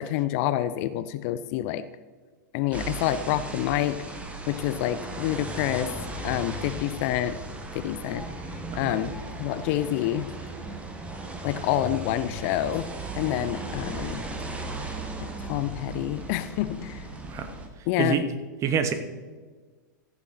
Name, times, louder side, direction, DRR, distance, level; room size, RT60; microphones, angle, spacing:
voice 1, 0.0-1.8 2.5-4.0 4.5-5.9 6.2-7.4 7.7-8.2 8.7-10.3 11.4-12.9 13.2-14.2 15.2-17.0 17.9-18.2, left 13 dB, 45° left, 14 dB, 0.5 m, -27 dB
sound 1, 2.7-17.7, right 2 dB, 10° right, 1.5 m, -36 dB
voice 2, 18.6-18.9, right 7 dB, 30° right, 9 dB, 1.2 m, -25 dB
15.0 x 7.1 x 4.2 m, 1.4 s
figure-of-eight pair, 100°, 10 cm